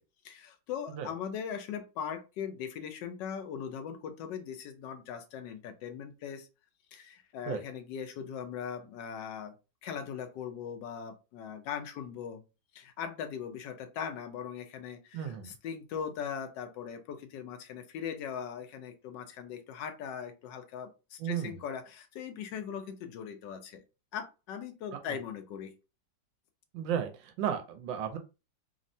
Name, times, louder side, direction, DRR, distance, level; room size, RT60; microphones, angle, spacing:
voice 1, 0.2-6.5 6.9-9.5 9.8-12.4 12.7-23.8 24.1-25.7, left 7 dB, 75° left, 7 dB, 1.2 m, -40 dB
voice 2, 15.1-15.5 21.2-21.6 24.9-25.0 26.7-28.2, right 9 dB, 85° right, 7 dB, 1.3 m, -34 dB
3.4 x 2.1 x 2.6 m, 0.29 s
omnidirectional pair, 2.0 m